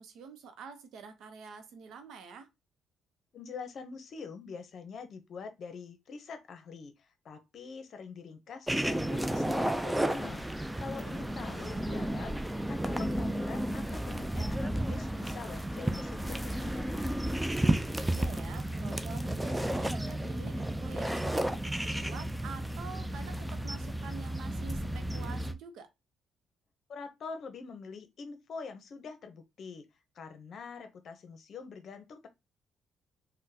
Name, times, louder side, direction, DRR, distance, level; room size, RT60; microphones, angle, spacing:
voice 1, 0.0-2.5 11.2-11.9 18.1-25.9, right 5 dB, 80° right, 0.6 m, -47 dB
voice 2, 3.3-10.4 10.8-17.1 26.9-29.9 30.1-32.3, left 5 dB, 60° left, 0.7 m, -45 dB
sound 1, 8.7-25.5, right 1 dB, 5° right, 0.4 m, -32 dB
3.8 x 2.1 x 2.7 m
cardioid pair, 90°, 0 cm